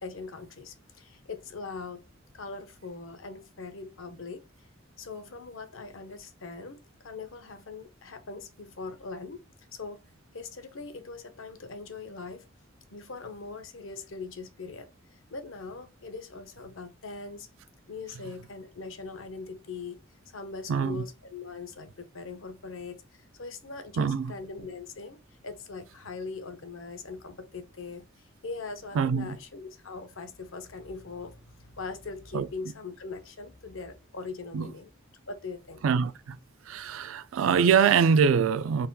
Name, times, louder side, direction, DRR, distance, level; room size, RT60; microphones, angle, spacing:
voice 1, 0.0-2.0 2.3-4.4 5.0-9.4 9.7-10.0 10.3-12.5 12.9-17.5 17.9-20.0 20.3-34.9 35.3-35.8, left 4 dB, 75° left, 0.7 m, -41 dB
voice 2, 20.7-21.0 24.0-24.3 29.0-29.4 32.3-32.5 34.5-34.7 35.8-36.4 36.7-38.9, right 6 dB, 85° right, 0.4 m, -24 dB
3.9 x 2.2 x 4.0 m
head